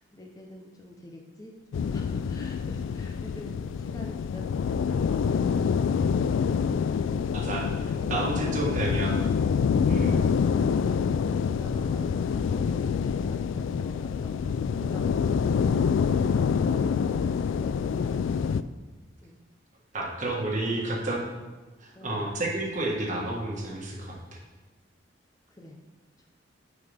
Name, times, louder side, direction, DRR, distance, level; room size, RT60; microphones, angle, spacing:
voice 1, 0.0-5.6 7.8-9.1 11.4-18.2 19.2-19.4 20.6-21.3 21.9-22.2 25.5-25.8 26.2-26.3, left 1 dB, 20° left, 0 dB, 0.7 m, -46 dB
sound 1, 1.7-18.6, left 6 dB, 90° left, 0.3 m, -26 dB
voice 2, 7.3-7.7 8.1-9.3 9.8-10.3 19.9-21.2 21.8-24.4, right 2 dB, 40° right, -1 dB, 1.5 m, -30 dB
9.4 x 5.6 x 3.4 m, 1.2 s
head